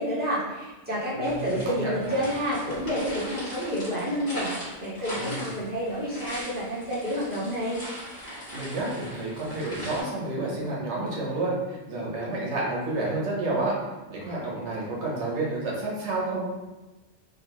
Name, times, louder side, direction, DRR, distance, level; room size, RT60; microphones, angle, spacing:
voice 1, 0.0-7.8, equal, 10° right, -11 dB, 1.2 m, -29 dB
voice 2, 1.1-2.2 5.1-5.5 8.5-13.8 14.1-16.4, right 2 dB, 80° right, -5 dB, 1.1 m, -30 dB
sound 1, 1.2-10.0, equal, 70° left, 1.7 m, -39 dB
3.8 x 2.3 x 2.8 m, 1.1 s
omnidirectional pair, 1.2 m